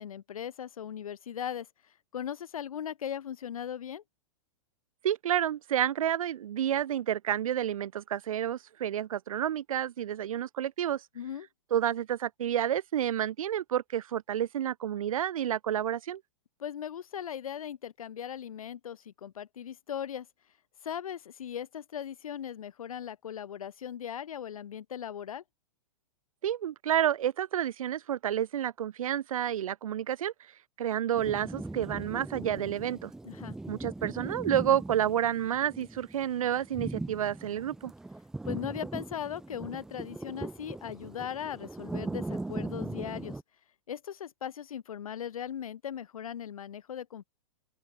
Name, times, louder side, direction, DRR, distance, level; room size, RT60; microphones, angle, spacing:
voice 1, 0.0-1.7 2.1-4.0 11.1-11.5 16.6-20.3 20.8-25.4 33.2-33.6 38.5-43.4 43.9-47.2, left 9 dB, 85° left, 6.2 m, -38 dB
voice 2, 5.0-11.0 11.7-16.2 26.4-30.3 30.8-33.1 33.7-37.9, right 10 dB, 80° right, 1.7 m, -30 dB
sound 1, 31.1-43.4, right 2 dB, 5° right, 0.4 m, -39 dB
open air
hypercardioid pair, 150°, 17 cm